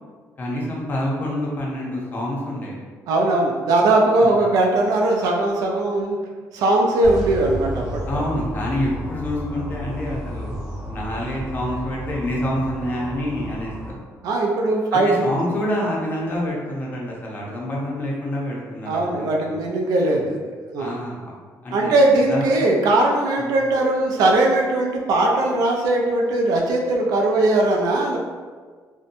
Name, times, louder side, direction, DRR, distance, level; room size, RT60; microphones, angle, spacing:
voice 1, 0.4-2.8 4.2-4.4 8.1-13.7 14.9-19.6 20.8-21.3 21.6-21.9 22.3-22.6 23.4-23.5, left 1 dB, 30° left, -3 dB, 0.5 m, -27 dB
voice 2, 3.1-6.2 6.5-8.2 14.2-15.3 18.9-20.4 20.7-21.0 21.7-28.2, right 2 dB, 85° right, 0 dB, 0.4 m, -19 dB
sound 1, 7.0-13.9, equal, 10° right, 0.7 m, -32 dB
2.7 x 2.1 x 2.6 m, 1.5 s
cardioid pair, 165°, 6 cm